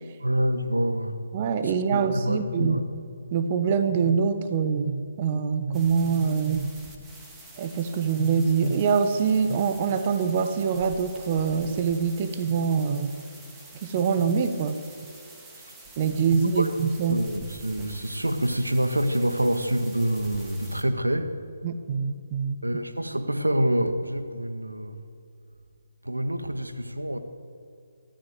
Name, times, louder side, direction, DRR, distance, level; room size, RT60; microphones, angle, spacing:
voice 1, 0.2-1.2 1.9-2.8 16.5-16.8 17.1-21.3 22.6-24.9 26.0-27.2, right 1 dB, 85° right, 7 dB, 1.8 m, -26 dB
voice 2, 1.3-2.8 3.3-6.7 7.6-13.1 13.8-14.8 16.0-17.2 21.6-22.6, right 6 dB, 30° right, 9 dB, 1.3 m, -24 dB
sound 1, 5.7-20.8, right 2 dB, 10° right, 2.4 m, -47 dB
23.5 x 14.0 x 8.0 m, 2.3 s
figure-of-eight pair, 140°, 0 cm